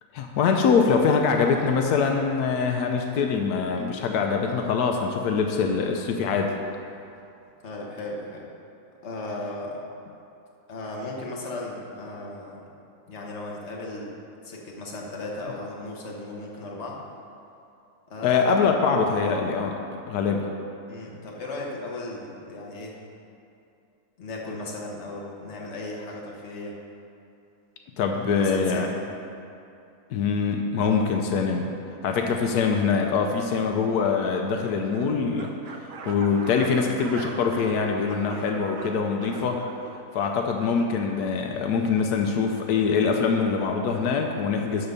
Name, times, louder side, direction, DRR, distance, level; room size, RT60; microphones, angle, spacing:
voice 1, 0.1-6.5 18.2-19.8 20.1-20.5 28.0-28.9 30.1-31.7 32.0-35.5 36.1-39.6 40.1-44.9, left 5 dB, 85° left, 3 dB, 1.2 m, -24 dB
voice 2, 7.6-8.5 9.0-9.8 10.7-12.6 13.1-14.1 14.4-17.0 18.1-18.5 20.9-23.0 24.2-26.8 28.1-29.1, left 2 dB, 50° left, -2 dB, 1.4 m, -36 dB
sound 1, 34.9-40.9, right 4 dB, 55° right, 0.6 m, -41 dB
11.5 x 3.9 x 6.8 m, 2.6 s
omnidirectional pair, 1.6 m